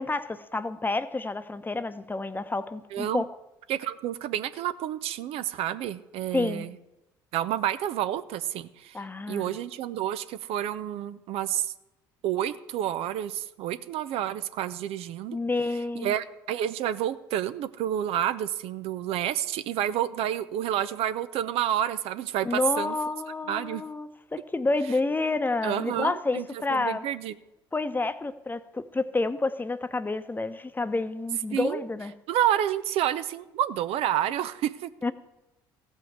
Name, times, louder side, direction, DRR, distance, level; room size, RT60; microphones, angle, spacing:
voice 1, 0.0-3.3 6.3-6.7 8.9-9.5 15.3-16.1 22.4-27.0 27.7-32.1 35.0-35.1, left 3 dB, 20° left, 12 dB, 0.9 m, -29 dB
voice 2, 2.9-3.2 3.7-6.7 7.3-8.9 9.3-11.7 12.2-15.4 15.9-23.0 23.5-23.8 25.6-26.4 26.7-27.3 31.5-31.9 32.3-35.1, right 11 dB, 65° right, 12 dB, 0.7 m, -29 dB
15.0 x 5.6 x 7.9 m, 0.94 s
hypercardioid pair, 65°, 11 cm